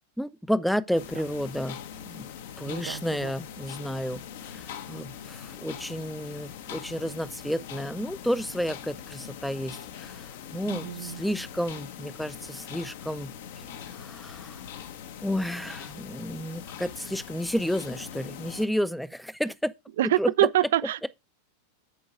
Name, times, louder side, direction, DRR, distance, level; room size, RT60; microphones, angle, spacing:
voice 1, 0.2-2.3 2.6-4.2 4.5-14.6 15.2-19.7 20.2-20.3, equal, ahead, 0.5 m, -31 dB
sound 1, 0.9-18.7, left 8 dB, 55° left, 0.9 m, -42 dB
voice 2, 2.6-3.3 10.7-11.2 20.0-21.1, right 14 dB, 55° right, 0.4 m, -26 dB
8.6 x 4.7 x 4.8 m
figure-of-eight pair, 90°, 0 cm